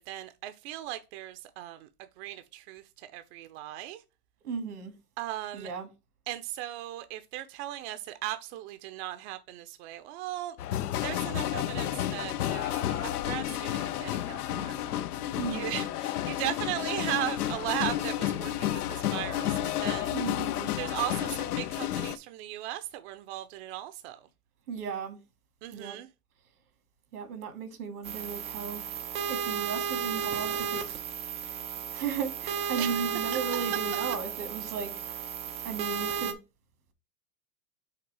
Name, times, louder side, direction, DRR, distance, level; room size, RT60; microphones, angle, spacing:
voice 1, 0.1-1.9 2.2-4.0 5.2-5.7 6.3-10.6 11.0-14.8 15.5-20.1 20.8-24.3 25.6-26.1 32.8-33.0, right 14 dB, 50° right, 0.7 m, -37 dB
voice 2, 4.4-4.9 5.5-5.9 15.3-15.8 20.1-20.7 24.7-25.2 25.7-26.0 27.1-28.8 29.3-31.0 31.9-34.9 35.6-36.4, right 6 dB, 85° right, 2.1 m, -35 dB
sound 1, 10.6-22.2, left 12 dB, 90° left, 0.6 m, -31 dB
sound 2, 28.0-36.3, right 7 dB, 15° right, 0.3 m, -33 dB
5.9 x 3.6 x 4.7 m
hypercardioid pair, 125°, 44 cm